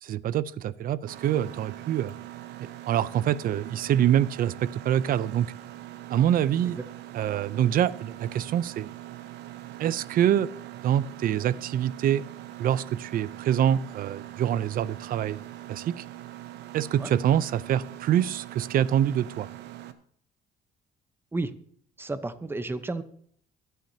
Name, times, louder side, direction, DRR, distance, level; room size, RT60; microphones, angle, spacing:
voice 1, 0.0-2.1 2.9-5.5 6.1-6.8 7.1-8.9 9.8-10.5 10.8-12.2 12.6-15.4 15.7-16.0 16.7-19.5, right 10 dB, 55° right, 18 dB, 0.6 m, -25 dB
Mechanisms, 1.1-19.9, right 14 dB, 90° right, 0.9 m, -42 dB
voice 2, 22.0-23.0, right 2 dB, 15° right, 11 dB, 0.9 m, -32 dB
23.5 x 9.3 x 2.8 m, 0.63 s
cardioid pair, 110°, 17 cm